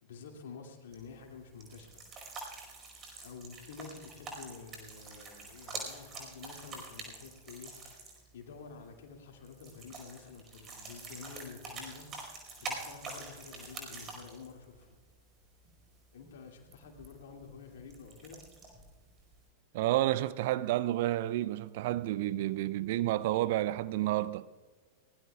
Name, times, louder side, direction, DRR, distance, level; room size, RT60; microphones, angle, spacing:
voice 1, 0.0-2.0 3.2-7.9 8.3-12.1 12.6-14.9 16.1-18.4, left 5 dB, 60° left, 2.5 m, -49 dB
sound 1, 0.9-19.4, right 3 dB, 30° right, 4.9 m, -47 dB
voice 2, 19.7-24.5, right 15 dB, 50° right, 0.5 m, -30 dB
23.0 x 19.5 x 2.4 m
figure-of-eight pair, 90°, 0 cm